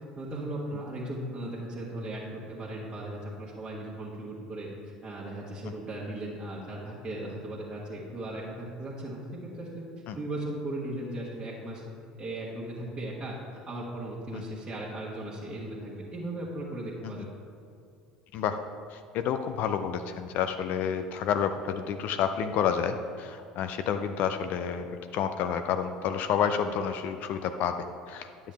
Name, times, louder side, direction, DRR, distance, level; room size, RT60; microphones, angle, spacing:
voice 1, 0.2-2.2 2.5-9.8 10.1-11.8 12.2-17.2, right 1 dB, 20° right, -7 dB, 1.5 m, -37 dB
voice 2, 18.9-27.7 28.1-28.3, left 8 dB, 50° left, 8 dB, 0.4 m, -29 dB
10.0 x 7.3 x 3.3 m, 2.5 s
figure-of-eight pair, 65°, 4 cm